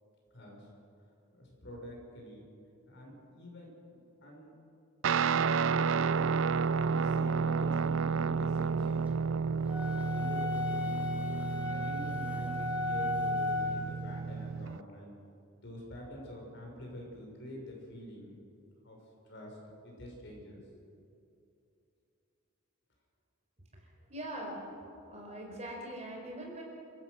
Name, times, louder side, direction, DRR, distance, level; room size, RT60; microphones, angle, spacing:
voice 1, 0.3-0.7 1.3-2.4 2.9-3.7 4.2-4.5 5.2-6.2 6.6-9.4 10.1-11.0 11.4-15.1 15.6-18.3 18.8-19.0 19.3-20.8, equal, 55° left, -1 dB, 6.0 m, -47 dB
Guitar, 5.0-14.8, right 5 dB, 65° right, 0.4 m, -31 dB
sound 1, 9.7-13.9, left 3 dB, 5° right, 2.0 m, -35 dB
voice 2, 23.7-24.6 25.1-26.6, right 1 dB, 30° right, 0 dB, 4.7 m, -42 dB
28.5 x 15.5 x 6.5 m, 2.7 s
head